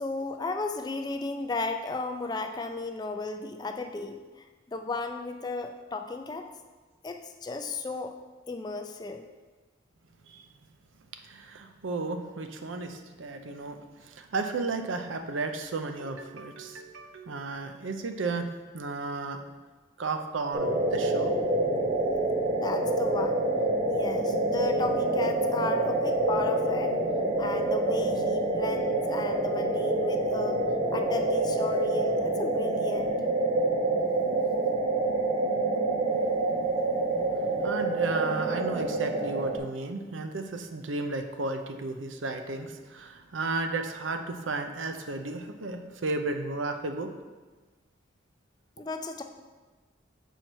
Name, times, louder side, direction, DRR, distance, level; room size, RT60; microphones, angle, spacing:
voice 1, 0.0-4.2 4.7-6.5 7.0-8.1 8.5-9.2 22.5-23.4 23.9-27.0 27.4-30.6 30.9-33.1 48.8-49.2, left 3 dB, 20° left, 6 dB, 0.3 m, -34 dB
voice 2, 11.2-18.5 18.7-19.4 20.0-21.3 37.6-47.1, right 3 dB, 75° right, 6 dB, 0.6 m, -33 dB
sound 1, 20.5-39.6, right 2 dB, 30° right, 0.7 m, -27 dB
6.6 x 4.5 x 4.5 m, 1.3 s
head